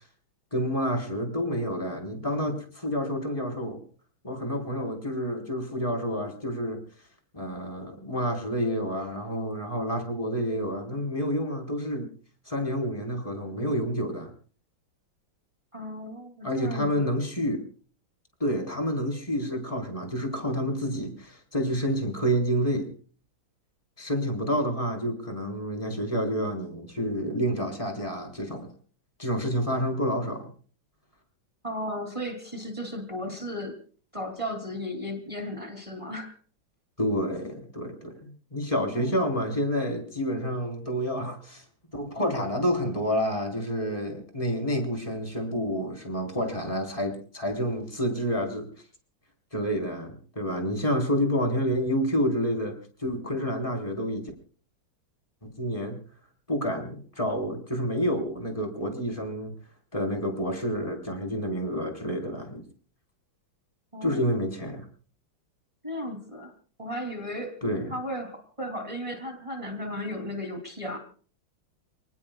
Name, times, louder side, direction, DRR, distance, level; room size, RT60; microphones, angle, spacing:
voice 1, 0.5-3.8 4.2-6.8 7.3-12.1 12.5-14.3 16.4-17.6 18.4-22.9 24.0-28.7 29.2-30.5 37.0-41.6 41.9-48.7 49.5-54.3 55.4-56.0 56.5-59.5 59.9-62.6 64.0-64.9 67.6-67.9, equal, 15° left, 3 dB, 4.3 m, -29 dB
voice 2, 15.7-17.1 31.6-33.7 34.1-36.3 38.7-39.1 63.9-64.4 65.8-66.5 66.8-67.6 67.9-71.0, equal, 15° right, 4 dB, 3.1 m, -35 dB
29.5 x 19.5 x 2.4 m, 0.43 s
omnidirectional pair, 2.2 m